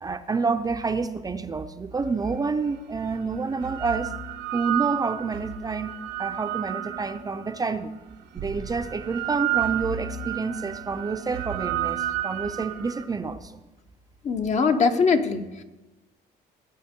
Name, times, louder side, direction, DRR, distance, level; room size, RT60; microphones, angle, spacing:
voice 1, 0.0-4.1 4.5-5.9 6.2-7.9 8.3-13.6, right 4 dB, 20° right, 8 dB, 0.6 m, -28 dB
sound 1, 2.3-2.4 3.3-7.6 8.4-13.0, right 13 dB, 85° right, 0.9 m, -31 dB
voice 2, 14.2-15.6, left 5 dB, 45° left, 7 dB, 0.9 m, -22 dB
17.0 x 9.4 x 3.7 m, 1.1 s
cardioid pair, 110°, 17 cm